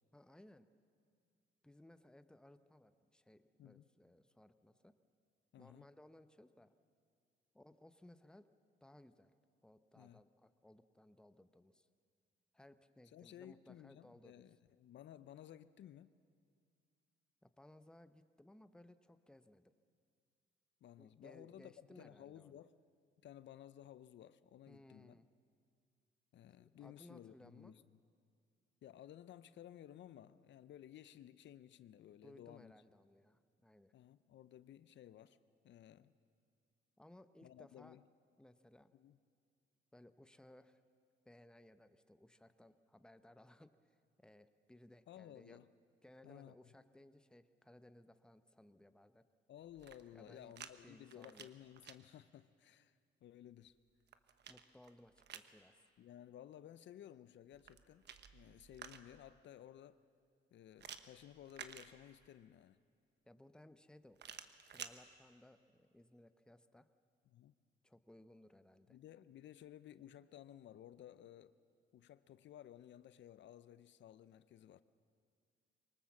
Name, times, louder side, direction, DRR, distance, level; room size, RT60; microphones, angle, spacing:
voice 1, 0.1-0.7 1.6-4.9 5.6-6.7 7.5-8.5 8.8-9.3 9.6-11.9 12.5-14.4 17.4-19.7 21.0-22.6 24.7-25.3 26.6-27.8 32.2-33.9 37.0-38.0 38.4-38.9 39.9-40.8 41.2-45.6 46.0-49.3 50.1-51.5 54.5-55.8 63.2-66.9 67.8-69.0, left 1 dB, 5° left, 11 dB, 0.8 m, -62 dB
voice 2, 5.5-5.9 10.0-10.2 13.1-16.1 20.8-22.7 23.2-25.2 26.3-27.8 28.8-32.7 33.9-35.4 35.6-36.1 37.4-38.0 38.9-39.2 45.1-45.7 46.2-46.7 49.5-53.8 56.0-58.0 58.3-60.0 60.5-62.8 67.3-67.5 68.9-71.6 71.9-74.8, left 11 dB, 65° left, 15 dB, 0.6 m, -56 dB
sound 1, 49.7-50.7 51.0-52.0 53.7-55.5 57.5-59.3 60.8-62.4 64.2-65.0, right 8 dB, 60° right, 1.1 m, -53 dB
24.0 x 18.5 x 7.3 m, 2.2 s
cardioid pair, 90°, 20 cm